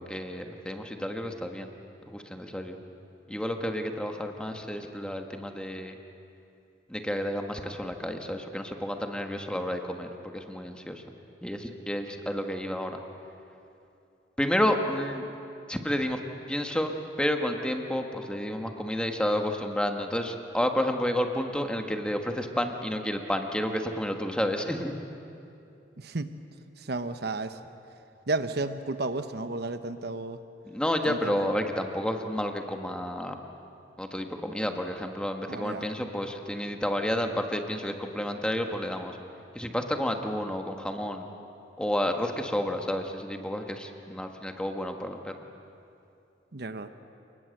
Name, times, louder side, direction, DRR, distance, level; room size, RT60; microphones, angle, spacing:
voice 1, 0.0-1.7 2.1-2.8 3.3-6.0 6.9-11.0 11.4-13.0 14.4-15.3 15.7-16.2 16.5-24.9 30.6-33.4 34.0-39.2 39.5-41.3 41.8-45.3, equal, 5° left, 4 dB, 1.5 m, -30 dB
voice 2, 26.0-26.3 26.8-27.6 28.3-30.4 31.0-31.5 35.5-35.9 46.5-46.9, right 2 dB, 65° right, 10 dB, 1.0 m, -32 dB
28.0 x 20.0 x 7.9 m, 2.7 s
head